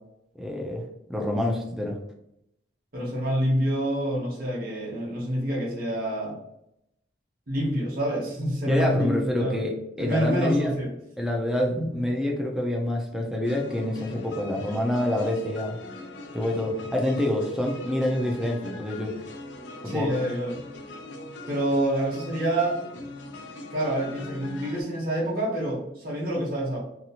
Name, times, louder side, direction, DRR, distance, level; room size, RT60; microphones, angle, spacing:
voice 1, 0.4-2.0 8.6-10.7 11.2-15.8 16.3-19.1 19.8-20.1, left 1 dB, 5° right, 0 dB, 0.4 m, -27 dB
voice 2, 2.9-6.4 7.5-9.6 10.0-10.9 19.8-20.6 21.5-22.8 23.7-26.8, right 1 dB, 50° right, -4 dB, 0.9 m, -27 dB
sound 1, 13.4-24.8, left 1 dB, 75° left, 0.4 m, -41 dB
2.8 x 2.4 x 2.8 m, 0.81 s
head